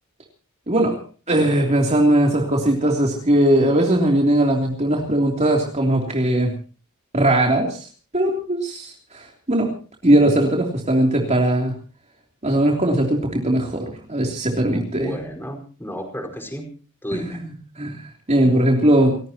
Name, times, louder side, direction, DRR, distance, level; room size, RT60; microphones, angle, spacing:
voice 1, 0.7-1.0 1.3-6.5 7.1-7.9 8.1-9.7 10.0-11.7 12.4-15.2 17.1-18.0 18.3-19.2, right 1 dB, 30° right, 0 dB, 3.2 m, -19 dB
voice 2, 14.6-16.6 17.0-17.4, equal, 10° left, 3 dB, 5.0 m, -32 dB
29.5 x 17.0 x 2.9 m, 0.37 s
head